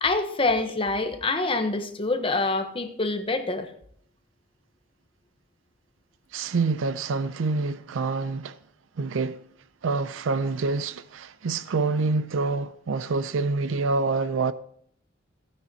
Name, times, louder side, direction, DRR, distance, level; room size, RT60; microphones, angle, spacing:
voice 1, 0.0-3.7, left 3 dB, 25° left, 0.9 m, -26 dB
voice 2, 6.3-8.6 9.0-9.4 9.8-14.5, right 3 dB, 75° right, 0.5 m, -26 dB
15.0 x 9.6 x 2.8 m
head